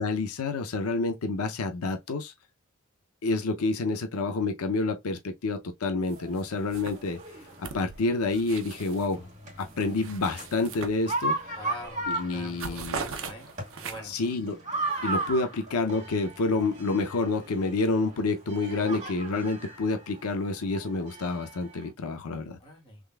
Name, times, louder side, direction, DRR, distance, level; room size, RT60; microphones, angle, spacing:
voice 1, 0.0-2.3 3.2-7.2 7.6-9.3 9.6-11.4 12.1-13.0 14.0-14.6 15.0-22.6, left 3 dB, 90° left, 0.6 m, -28 dB
sound 1, 6.1-21.9, right 2 dB, 35° right, 2.1 m, -37 dB
sound 2, 6.1-6.4 6.7-9.2 9.6-11.5 11.8-12.0 12.3-14.3, right 5 dB, 65° right, 0.6 m, -40 dB
voice 2, 11.6-13.5 13.8-14.2 18.7-19.0 22.6-23.0, equal, 25° left, 1.7 m, -43 dB
3.7 x 3.2 x 2.3 m
head